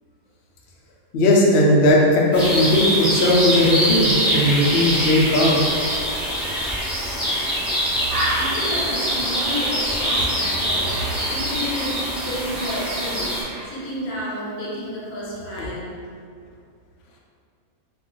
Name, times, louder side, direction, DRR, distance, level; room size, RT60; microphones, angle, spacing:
voice 1, 1.1-5.6 15.6-15.7, left 1 dB, 65° left, -3 dB, 0.6 m, -17 dB
sound 1, 2.3-13.4, equal, ahead, 0.8 m, -24 dB
Bird, 7.2-7.4 7.7-7.8 8.1-11.2 11.5-13.2 13.5-13.8, right 1 dB, 70° right, 0.5 m, -31 dB
voice 2, 7.9-15.9, equal, 85° left, -6 dB, 1.2 m, -31 dB
2.3 x 2.3 x 3.7 m, 2.3 s
omnidirectional pair, 1.5 m